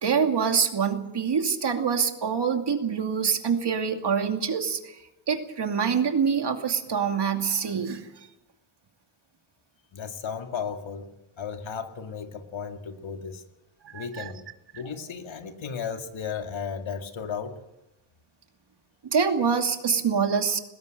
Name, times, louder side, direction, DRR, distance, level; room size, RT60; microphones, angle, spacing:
voice 1, 0.0-5.0 5.3-8.0 13.8-14.3 19.1-20.6, right 6 dB, 55° right, 5 dB, 2.6 m, -25 dB
voice 2, 9.9-11.1 11.4-13.4 13.9-14.4 14.7-17.6, left 6 dB, 65° left, 6 dB, 2.3 m, -34 dB
20.5 x 17.0 x 7.9 m, 0.93 s
cardioid pair, 80°, 50 cm